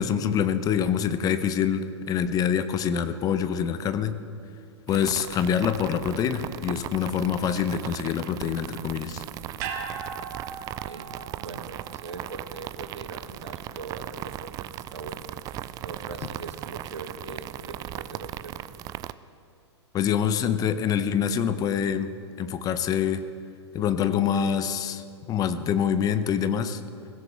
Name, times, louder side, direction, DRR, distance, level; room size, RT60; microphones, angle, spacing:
voice 1, 0.0-4.2 4.9-9.2 19.9-23.2 23.7-26.8, left 8 dB, 25° left, 11 dB, 0.8 m, -25 dB
sound 1, 4.9-19.1, right 13 dB, 25° right, 0.4 m, -38 dB
sound 2, 9.6-13.9 14.2-14.3, right 6 dB, 45° right, 1.8 m, -39 dB
voice 2, 10.8-11.1 11.4-15.2 15.8-18.5, right 3 dB, 80° right, 6 dB, 1.5 m, -41 dB
21.5 x 17.0 x 3.4 m, 2.4 s
figure-of-eight pair, 105°, 15 cm